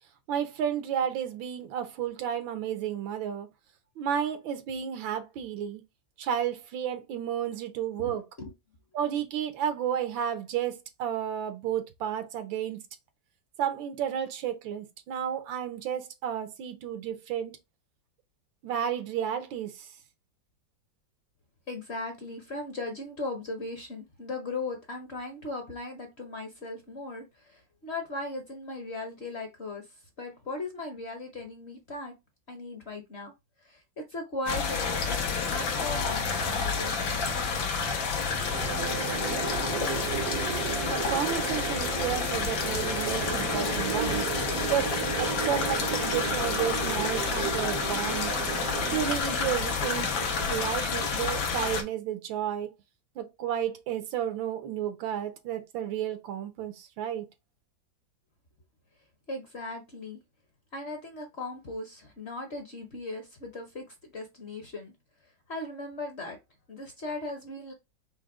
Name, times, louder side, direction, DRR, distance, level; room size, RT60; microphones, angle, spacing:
voice 1, 0.3-3.5 4.0-5.8 6.2-8.2 8.9-12.8 13.6-17.6 18.6-19.9 40.9-44.2 44.7-44.9 45.2-48.3 48.9-52.7 53.2-57.3, right 9 dB, 85° right, 1.6 m, -32 dB
voice 2, 8.0-8.5 21.7-32.1 32.5-33.3 33.6-37.2 59.3-60.2 60.7-64.9 65.5-66.4 66.7-67.7, left 2 dB, 50° left, 0.8 m, -38 dB
sound 1, 34.5-51.8, left 5 dB, 90° left, 1.7 m, -29 dB
sound 2, 38.5-49.2, right 10 dB, 70° right, 0.9 m, -34 dB
5.0 x 2.1 x 4.7 m
omnidirectional pair, 2.0 m